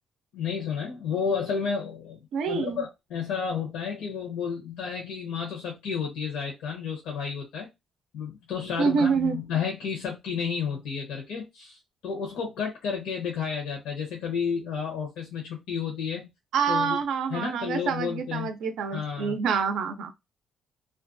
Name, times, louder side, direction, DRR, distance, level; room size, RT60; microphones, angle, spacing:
voice 1, 0.3-2.2 2.5-7.7 8.1-16.3 16.7-17.0 17.3-18.5 18.9-19.4, left 6 dB, 90° left, 0.8 m, -31 dB
voice 2, 2.3-2.8 8.8-9.4 16.5-20.1, right 6 dB, 80° right, 0.4 m, -26 dB
2.4 x 2.2 x 2.5 m
cardioid pair, 90°, 0 cm